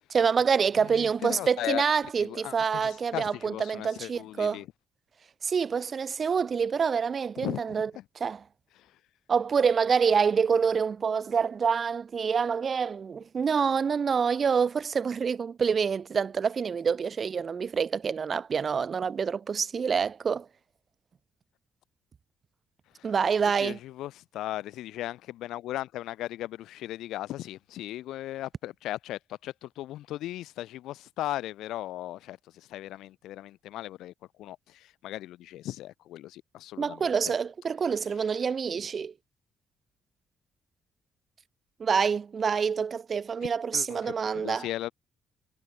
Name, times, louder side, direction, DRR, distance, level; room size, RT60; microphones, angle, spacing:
voice 1, 0.1-4.6 5.4-7.9 8.2-8.4 9.3-20.5 23.0-23.8 36.8-39.1 41.8-44.7, right 6 dB, 45° right, 2.4 m, -27 dB
voice 2, 0.8-1.9 2.2-4.7 7.4-8.0 8.8-8.9 22.9-23.1 23.6-34.1 34.4-37.3 43.7-44.9, left 14 dB, 85° left, 1.2 m, -37 dB
cardioid pair, 90°, 0 cm